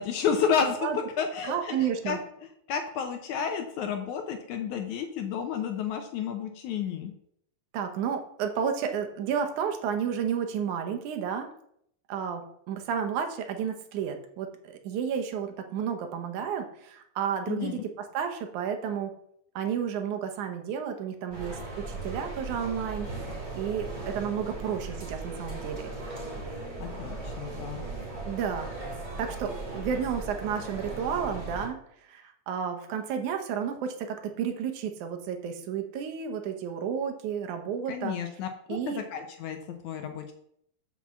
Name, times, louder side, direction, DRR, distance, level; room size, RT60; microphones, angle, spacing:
voice 1, 0.0-2.2 2.7-7.1 17.5-17.8 26.8-27.8 37.9-39.6 39.8-40.3, left 7 dB, 75° left, 6 dB, 1.9 m, -31 dB
voice 2, 1.4-2.2 7.7-11.5 12.1-19.1 19.6-23.1 23.5-25.9 28.3-28.7 29.2-31.8 32.1-38.2 38.7-39.0, right 7 dB, 70° right, 5 dB, 2.2 m, -31 dB
sound 1, 21.3-31.7, right 2 dB, 25° right, 2.6 m, -37 dB
6.3 x 5.9 x 7.1 m, 0.72 s
omnidirectional pair, 3.9 m